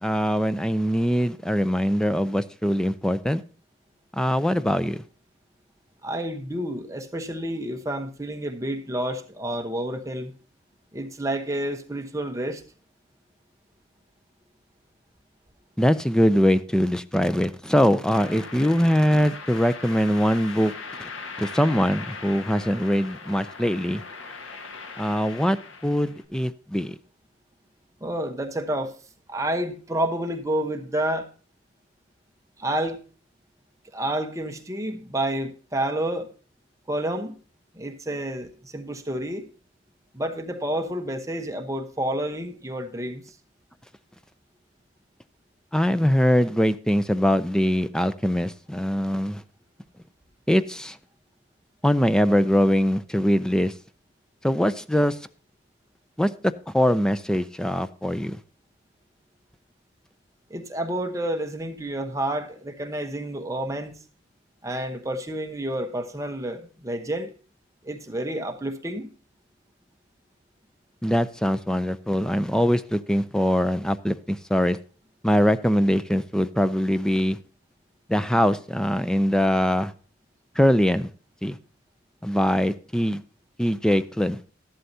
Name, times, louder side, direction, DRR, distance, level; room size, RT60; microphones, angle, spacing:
voice 1, 0.0-3.4 4.1-5.0 15.8-20.7 21.4-24.0 25.0-25.6 25.8-27.0 45.7-49.4 50.5-51.0 51.8-53.7 54.4-55.2 56.2-58.4 71.0-74.8 75.2-77.4 78.1-79.9 80.6-81.1 81.4-81.6 82.2-83.2 83.6-84.4, equal, 5° left, 0.4 m, -22 dB
voice 2, 6.0-10.3 10.9-12.6 28.0-28.9 29.3-31.3 32.6-33.0 33.9-36.3 36.9-37.4 37.7-39.5 40.1-43.3 60.5-64.0 64.6-67.3 67.8-69.1, right 1 dB, 15° right, 1.0 m, -29 dB
sound 1, 18.1-26.2, left 4 dB, 85° left, 1.5 m, -40 dB
13.5 x 11.5 x 2.8 m
head